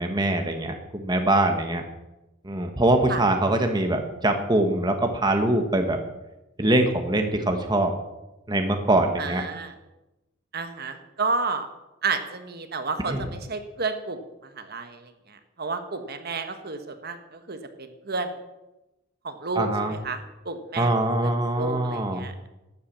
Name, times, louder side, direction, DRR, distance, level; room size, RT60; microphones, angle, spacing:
voice 1, 0.0-1.8 2.4-6.0 6.6-7.9 8.5-9.4 13.1-13.2 19.5-19.9 20.8-22.3, right 1 dB, 20° right, 5 dB, 1.2 m, -23 dB
voice 2, 9.2-9.7 10.5-11.7 12.0-14.2 14.6-18.3 19.2-20.2 20.4-20.9 21.2-21.3 21.6-22.5, right 4 dB, 50° right, 7 dB, 1.3 m, -31 dB
12.5 x 9.8 x 7.4 m, 0.98 s
head